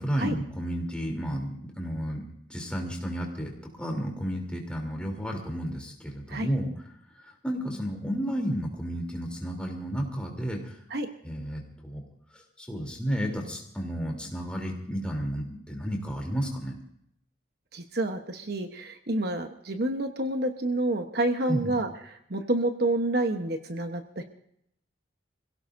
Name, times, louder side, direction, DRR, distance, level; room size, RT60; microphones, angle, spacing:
voice 1, 0.0-2.2 2.5-3.5 3.8-6.7 7.2-10.7 11.2-12.0 12.6-16.7 21.5-21.7, equal, 5° left, 0 dB, 3.2 m, -32 dB
voice 2, 17.7-24.2, right 1 dB, 60° right, 6 dB, 1.1 m, -29 dB
26.5 x 16.5 x 2.7 m, 0.72 s
head